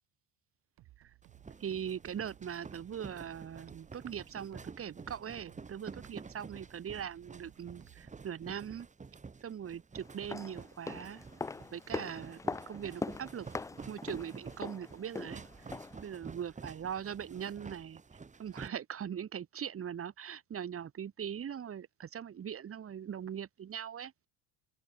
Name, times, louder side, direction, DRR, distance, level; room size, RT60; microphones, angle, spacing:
sound 1, 0.8-8.3, right 16 dB, 60° right, 2.4 m, -61 dB
sound 2, 1.2-18.7, right 4 dB, 20° right, 1.8 m, -50 dB
voice 1, 1.6-8.9 9.4-11.2 11.7-12.4 12.7-13.5 13.9-15.4 16.0-18.0 18.4-24.1, right 8 dB, 35° right, 1.8 m, -41 dB
sound 3, 10.1-16.1 16.4-16.5, left 4 dB, 10° left, 0.3 m, -42 dB
open air
supercardioid pair, 110°, 41 cm